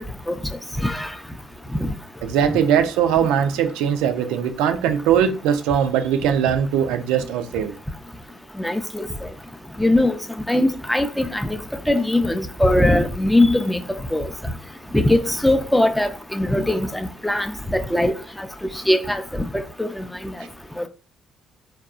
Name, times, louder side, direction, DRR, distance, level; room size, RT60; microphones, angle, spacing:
voice 1, 2.2-7.7, right 8 dB, 80° right, 0.3 m, -20 dB
voice 2, 8.6-9.1 9.8-10.2 10.5-11.6 11.9-13.8 14.1-14.3 14.9-18.2 18.9-20.3 20.8-20.9, left 1 dB, 5° left, 0.4 m, -20 dB
3.6 x 2.3 x 2.3 m
hypercardioid pair, 55°, 0 cm